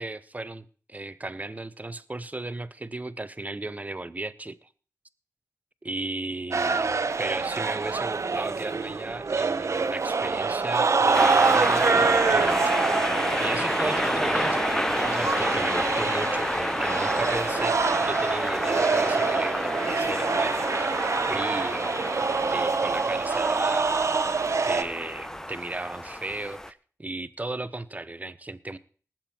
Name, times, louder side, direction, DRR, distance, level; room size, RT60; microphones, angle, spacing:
voice 1, 0.0-4.7 5.8-12.8 13.4-14.6 14.9-20.9 21.3-22.0 22.5-24.2 24.6-28.8, right 2 dB, 25° right, 1.0 m, -35 dB
sound 1, 6.5-24.8, right 4 dB, 55° right, 1.0 m, -25 dB
sound 2, 11.1-26.7, left 1 dB, 10° left, 0.8 m, -30 dB
19.5 x 7.5 x 4.5 m
cardioid pair, 55°, 6 cm